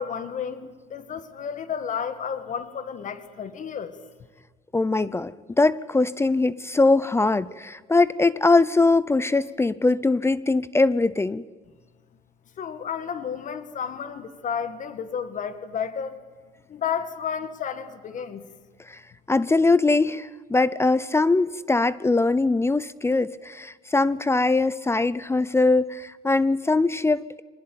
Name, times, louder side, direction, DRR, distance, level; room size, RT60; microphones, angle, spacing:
voice 1, 0.0-4.0 12.6-16.2 16.7-18.4, left 7 dB, 50° left, 11 dB, 2.0 m, -32 dB
voice 2, 4.7-11.4 18.9-19.0 19.3-27.4, left 3 dB, 15° left, 18 dB, 0.7 m, -22 dB
25.0 x 20.5 x 8.8 m, 1.4 s
cardioid pair, 110°, 17 cm